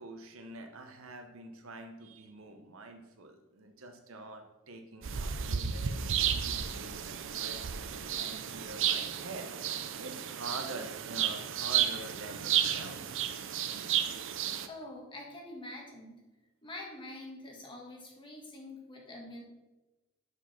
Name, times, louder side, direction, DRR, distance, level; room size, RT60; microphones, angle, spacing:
voice 1, 0.0-7.6 8.2-9.5 10.0-13.1, right 2 dB, 90° right, 5 dB, 1.0 m, -46 dB
sound 1, 5.0-14.7, right 9 dB, 65° right, 0.5 m, -33 dB
voice 2, 14.7-16.2 16.6-19.4, left 1 dB, 25° left, -1 dB, 1.6 m, -45 dB
6.3 x 5.2 x 5.5 m, 1.1 s
head